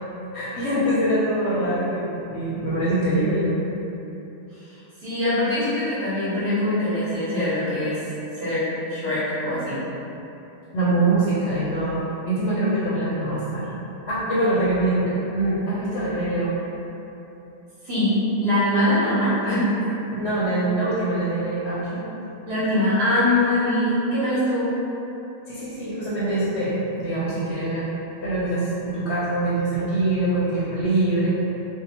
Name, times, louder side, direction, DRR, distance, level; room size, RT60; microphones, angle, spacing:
voice 1, 0.3-3.5 10.7-13.7 14.0-16.6 20.1-22.0 25.5-27.9 28.2-31.3, right 2 dB, 65° left, -9 dB, 0.8 m, -24 dB
voice 2, 4.7-8.0 8.4-8.6 8.9-9.8 10.8-10.9 17.8-19.6 22.5-24.7, left 1 dB, 50° right, -12 dB, 1.1 m, -23 dB
2.7 x 2.0 x 2.8 m, 3.0 s
omnidirectional pair, 1.4 m